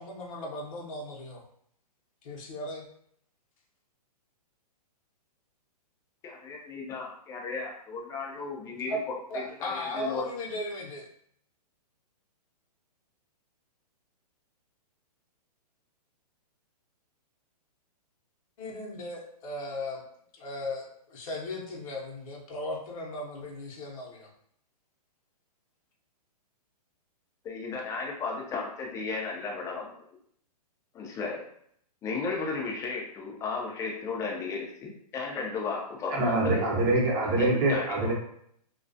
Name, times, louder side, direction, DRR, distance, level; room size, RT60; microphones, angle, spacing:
voice 1, 0.0-1.4 2.2-2.9 8.9-9.0 9.3-11.1 18.6-20.0 20.3-24.3, left 1 dB, 55° left, -1 dB, 0.7 m, -37 dB
voice 2, 6.2-9.0 9.3-10.3 27.4-30.0 30.9-31.4 32.0-36.7 37.4-38.1, left 4 dB, 15° left, -1 dB, 0.5 m, -35 dB
voice 3, 36.1-38.1, right 2 dB, 35° right, -2 dB, 0.8 m, -25 dB
2.3 x 2.2 x 2.6 m, 0.67 s
hypercardioid pair, 130°, 21 cm